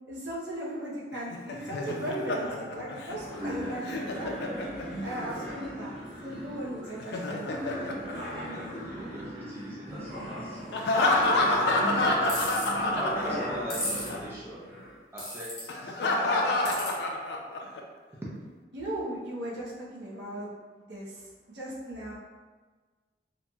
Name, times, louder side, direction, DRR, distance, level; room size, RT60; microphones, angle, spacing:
voice 1, 0.1-5.9 6.2-7.6 18.7-20.5 20.9-21.3 21.5-22.1, right 1 dB, 85° right, -5 dB, 0.7 m, -37 dB
Laughter, 1.1-5.2 6.9-9.0 10.7-13.8 14.0-14.2 15.7-17.8, left 2 dB, 75° left, 0.3 m, -28 dB
sound 1, 3.1-15.0, equal, 50° right, 1.4 m, -38 dB
voice 2, 7.7-10.6 11.2-12.5 12.9-14.7 15.1-16.7, right 1 dB, 15° right, -7 dB, 0.5 m, -41 dB
sound 2, 12.3-12.7 13.7-14.1 15.2-15.6 16.6-16.9, left 1 dB, 20° left, 1.0 m, -33 dB
2.9 x 2.6 x 2.2 m, 1.4 s
head